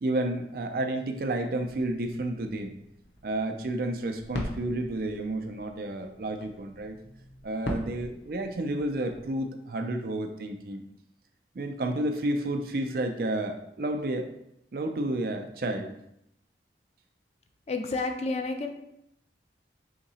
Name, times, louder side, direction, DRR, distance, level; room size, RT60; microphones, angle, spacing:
voice 1, 0.0-2.8 3.2-7.0 7.4-10.8 11.6-14.3 14.7-15.9, right 1 dB, 55° right, 5 dB, 0.4 m, -31 dB
sound 1, 1.6-9.4, left 1 dB, 70° left, 0.8 m, -42 dB
voice 2, 17.7-18.7, left 3 dB, 35° left, 5 dB, 0.4 m, -30 dB
3.7 x 2.9 x 4.1 m, 0.78 s
head